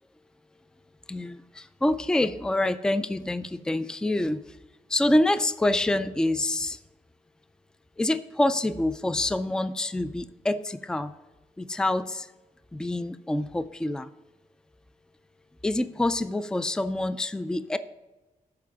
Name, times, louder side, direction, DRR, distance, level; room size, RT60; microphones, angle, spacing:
voice 1, 1.1-4.4 4.9-6.8 8.0-11.1 11.6-12.3 12.7-14.1 15.6-17.8, left 1 dB, 5° left, 13 dB, 0.3 m, -26 dB
12.5 x 4.7 x 3.6 m, 1.1 s
wide cardioid pair, 135°, 14 cm